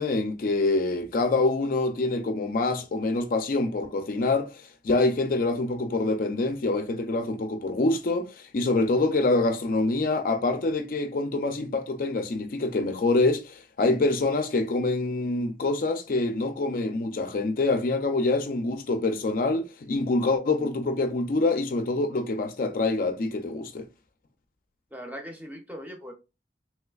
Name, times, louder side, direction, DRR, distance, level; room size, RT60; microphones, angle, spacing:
voice 1, 0.0-23.9, left 2 dB, 50° left, 0.4 m, -26 dB
voice 2, 24.9-26.1, equal, 10° right, 0.6 m, -39 dB
3.1 x 3.1 x 2.3 m
head